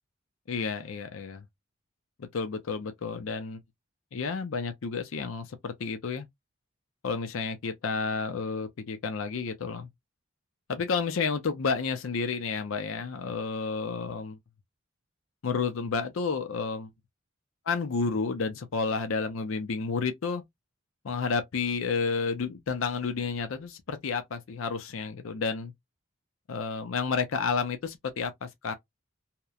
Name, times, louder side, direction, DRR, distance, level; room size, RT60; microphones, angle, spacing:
voice 1, 0.5-1.4 2.2-3.6 4.1-6.3 7.0-9.9 10.7-14.4 15.4-16.9 17.7-20.4 21.0-25.7 26.5-28.7, left 5 dB, 70° left, 0.5 m, -31 dB
2.9 x 2.1 x 2.3 m
head